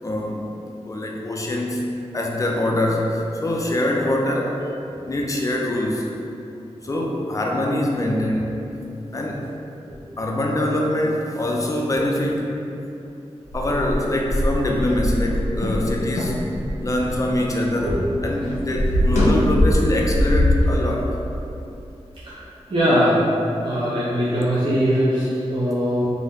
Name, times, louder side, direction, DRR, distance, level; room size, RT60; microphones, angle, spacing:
voice 1, 0.0-1.8 2.1-4.6 5.1-6.1 6.8-8.6 9.1-9.4 10.2-12.5 13.5-16.4 16.8-18.0 18.2-21.1, left 1 dB, 30° left, -1 dB, 0.4 m, -24 dB
sound 1, 13.5-17.9 18.2-20.7, left 1 dB, 80° left, 0.5 m, -21 dB
voice 2, 22.2-23.3 23.6-26.1, equal, 45° right, -10 dB, 0.6 m, -21 dB
2.6 x 2.1 x 3.5 m, 2.8 s
wide cardioid pair, 60°, 12 cm